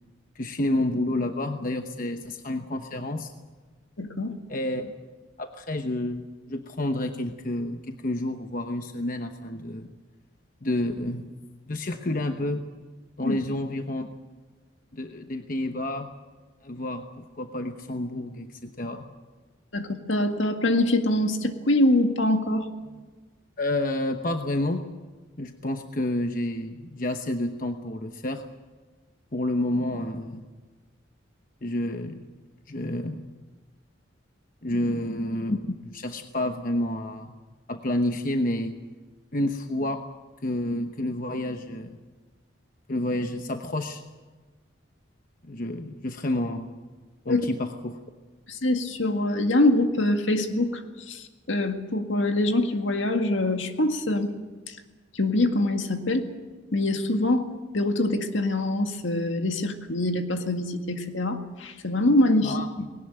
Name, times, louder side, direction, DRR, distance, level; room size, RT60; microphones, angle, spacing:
voice 1, 0.3-3.3 4.5-4.9 5.4-9.9 10.6-11.3 11.6-12.6 13.2-14.1 14.9-16.1 16.6-19.1 23.6-24.9 25.4-28.4 29.3-30.4 31.6-32.3 32.7-33.3 34.6-37.3 37.7-38.8 39.3-40.0 40.4-42.0 42.9-44.0 45.4-46.7 47.2-48.0 62.4-62.7, left 1 dB, 45° left, 6 dB, 1.0 m, -29 dB
voice 2, 4.0-4.3 13.2-13.4 19.7-22.6 47.3-47.5 48.5-50.8 51.1-54.3 54.7-54.8 55.1-56.3 56.7-62.6, left 1 dB, 70° left, 5 dB, 2.0 m, -24 dB
20.0 x 18.0 x 9.0 m, 1.3 s
head